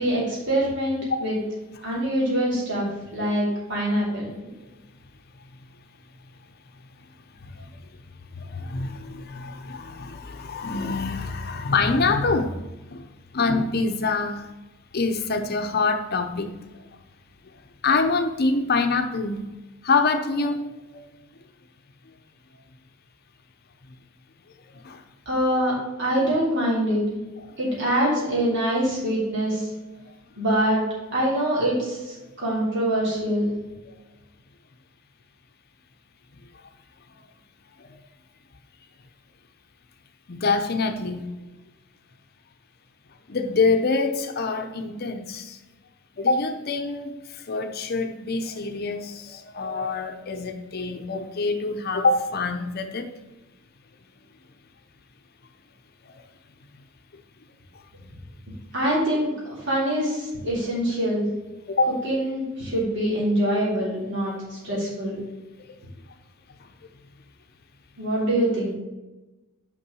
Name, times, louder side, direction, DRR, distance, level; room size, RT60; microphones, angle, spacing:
voice 1, 0.0-1.4 1.8-4.5 25.3-25.7 26.0-27.0 27.6-29.6 30.4-30.8 31.1-33.5 58.7-61.3 62.0-65.2 68.0-68.7, right 1 dB, 60° right, -6 dB, 3.0 m, -24 dB
voice 2, 8.4-12.6 12.9-13.0 13.3-14.4 14.9-16.5 17.8-19.4 19.8-20.6 20.9-21.1 24.8-25.0 26.2-26.3 40.3-41.3 43.3-45.6 46.2-47.1 47.5-53.1 61.7-62.0 64.7-64.9, left 3 dB, 50° left, 6 dB, 0.6 m, -25 dB
5.8 x 5.3 x 6.2 m, 1.1 s
head